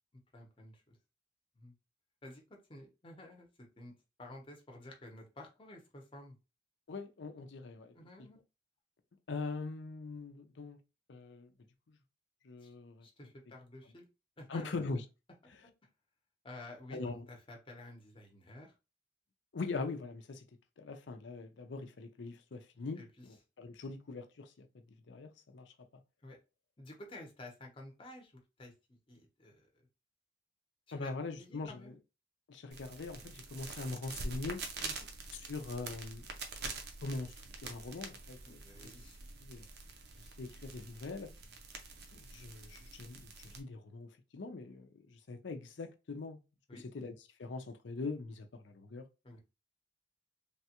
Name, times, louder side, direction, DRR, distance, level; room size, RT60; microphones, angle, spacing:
voice 1, 0.3-1.0 1.6-1.7 2.2-6.4 7.9-8.4 12.6-12.7 13.0-14.1 14.4-14.9 15.4-15.7 16.4-18.7 23.0-23.2 26.2-26.4 26.8-29.7 30.9-31.1 31.4-31.9 34.8-34.9 38.5-39.2 46.7-46.8 49.2-49.4, left 1 dB, 30° left, 0.8 m, -52 dB
voice 2, 6.9-7.9 9.3-10.8 11.1-11.5 11.9-12.0 12.4-13.1 14.5-15.0 16.9-17.3 19.5-20.4 20.8-24.7 25.1-25.7 30.9-31.9 32.5-34.6 35.4-36.2 36.6-36.7 37.0-37.3 37.6-38.9 39.4-39.6 40.4-41.3 42.1-46.4 46.9-47.1 47.4-49.1, left 3 dB, 70° left, 0.5 m, -42 dB
sound 1, 32.7-43.6, right 3 dB, 60° right, 0.6 m, -46 dB
3.3 x 2.2 x 2.8 m
head